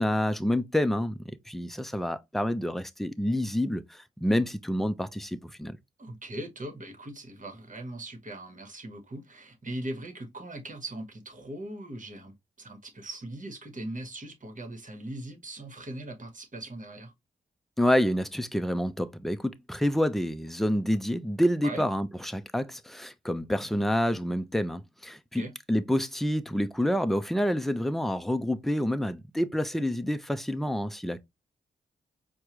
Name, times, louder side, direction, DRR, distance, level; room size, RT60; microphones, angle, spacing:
voice 1, 0.0-5.8 17.8-31.2, equal, ahead, 0.6 m, -28 dB
voice 2, 6.0-17.1 21.6-21.8 25.3-25.5, right 1 dB, 40° right, 1.3 m, -40 dB
4.6 x 2.3 x 2.9 m
supercardioid pair, 40°, 20 cm